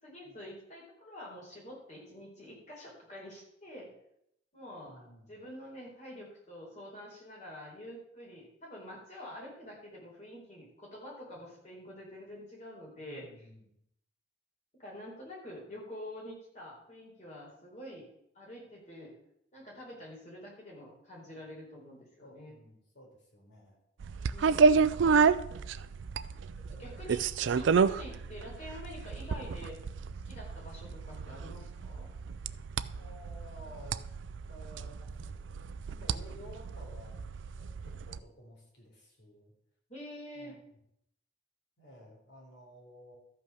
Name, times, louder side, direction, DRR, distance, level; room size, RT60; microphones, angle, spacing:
voice 1, 0.0-3.9 4.5-5.0 5.3-13.3 14.8-18.1 18.3-19.2 19.5-22.5 24.3-24.8 26.5-27.3 27.5-29.8 30.3-32.1 36.2-36.3 39.9-40.6, left 1 dB, 40° left, -3 dB, 4.1 m, -47 dB
voice 2, 4.9-5.4 11.3-11.5 13.0-13.8 22.2-23.8 24.8-25.5 26.6-27.1 32.9-34.0 34.5-35.6 35.9-39.5 40.3-40.8 41.8-43.2, equal, 65° left, -1 dB, 4.0 m, -54 dB
sound 1, 24.0-38.2, right 5 dB, 80° right, 0.4 m, -30 dB
13.0 x 5.7 x 6.2 m, 0.75 s
head